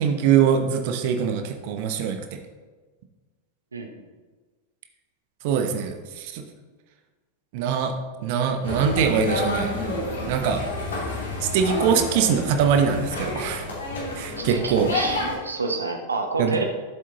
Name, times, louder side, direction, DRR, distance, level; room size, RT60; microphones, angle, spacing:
voice 1, 0.0-2.4 5.4-6.5 7.5-7.9 8.2-9.7 10.3-10.6 11.4-13.6 14.2-14.9 16.4-16.6, right 7 dB, 50° right, 5 dB, 1.0 m, -23 dB
sound 1, 8.6-15.4, left 2 dB, 70° left, 2.9 m, -29 dB
voice 2, 14.4-16.6, right 3 dB, 75° right, 4 dB, 0.9 m, -28 dB
13.5 x 7.4 x 3.0 m, 1.3 s
figure-of-eight pair, 90°, 0 cm